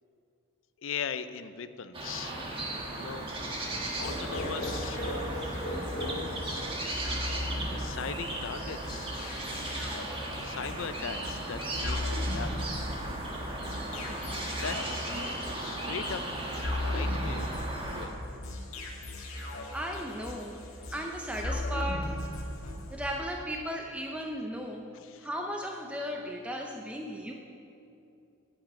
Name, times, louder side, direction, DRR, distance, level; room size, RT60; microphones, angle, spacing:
voice 1, 0.8-2.4 2.7-3.3 4.0-5.3 6.0-6.7 7.7-9.1 10.4-12.5 13.9-14.2 14.6-16.2 16.8-17.5 17.8-18.2 24.9-25.3, left 6 dB, 65° left, 12 dB, 0.5 m, -39 dB
sound 1, 1.9-18.1, right 1 dB, 25° right, 1.3 m, -36 dB
sound 2, 3.7-9.9, left 1 dB, 40° left, 2.3 m, -40 dB
sound 3, 4.0-23.2, left 1 dB, 85° left, 1.7 m, -38 dB
voice 2, 19.7-20.6 20.9-22.4 22.9-24.8 25.2-27.3, equal, 5° right, 1 dB, 0.5 m, -36 dB
8.9 x 7.3 x 8.9 m, 2.7 s
head